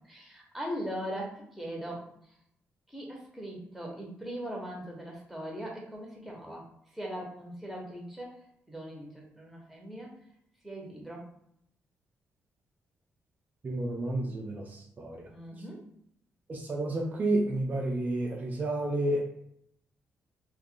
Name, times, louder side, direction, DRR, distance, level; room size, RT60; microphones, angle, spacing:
voice 1, 0.0-2.0 2.9-6.7 6.9-8.4 8.7-10.1 10.6-11.3 15.2-15.8, equal, ahead, -2 dB, 1.0 m, -40 dB
voice 2, 13.6-15.3 16.5-19.4, right 1 dB, 35° right, -1 dB, 0.5 m, -31 dB
2.6 x 2.4 x 3.7 m, 0.74 s
cardioid pair, 110°, 5 cm